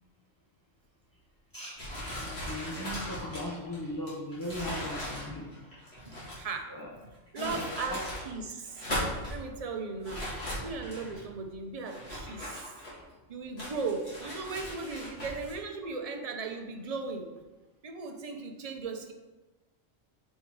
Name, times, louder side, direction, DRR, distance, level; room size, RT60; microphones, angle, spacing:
sound 1, 1.8-6.5 7.1-8.3 8.6-9.4 10.0-11.2 11.8-13.1 13.6-15.5, equal, 55° left, 3.0 m, -38 dB
voice 1, 2.1-5.6 6.7-6.9 7.4-7.6 7.9-8.0, left 1 dB, 25° left, -4 dB, 0.5 m, -38 dB
voice 2, 6.0-6.7 7.3-8.0 8.3-8.9 9.3-10.3 10.6-12.7 13.3-17.3 17.8-19.1, right 4 dB, 35° right, 4 dB, 0.7 m, -37 dB
6.9 x 4.4 x 4.7 m, 1.2 s
omnidirectional pair, 1.3 m